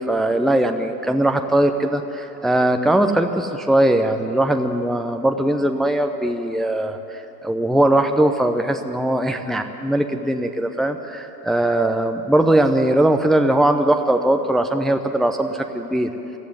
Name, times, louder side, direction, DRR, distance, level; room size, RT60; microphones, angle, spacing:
voice 1, 0.0-16.1, right 1 dB, ahead, 6 dB, 0.8 m, -20 dB
22.5 x 15.0 x 9.3 m, 2.9 s
figure-of-eight pair, 90°, 48 cm